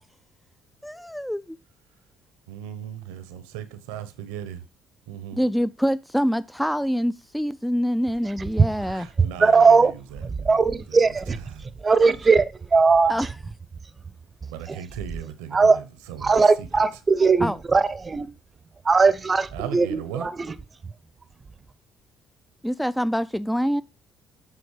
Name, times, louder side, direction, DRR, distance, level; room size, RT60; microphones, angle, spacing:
voice 1, 0.8-1.6 5.3-9.1 13.1-13.3 17.4-17.6 22.6-23.8, equal, 5° left, 0.3 m, -25 dB
voice 2, 2.5-4.6 5.1-5.4 8.8-11.7 14.5-16.8 19.5-20.3, right 10 dB, 85° right, 0.8 m, -38 dB
voice 3, 9.2-9.9 10.2-11.4 11.8-12.4 12.7-13.1 14.7-14.8 15.5-15.8 16.2-18.3 18.8-20.5, right 4 dB, 35° right, 0.6 m, -19 dB
7.7 x 3.9 x 4.7 m
hypercardioid pair, 55°, 0 cm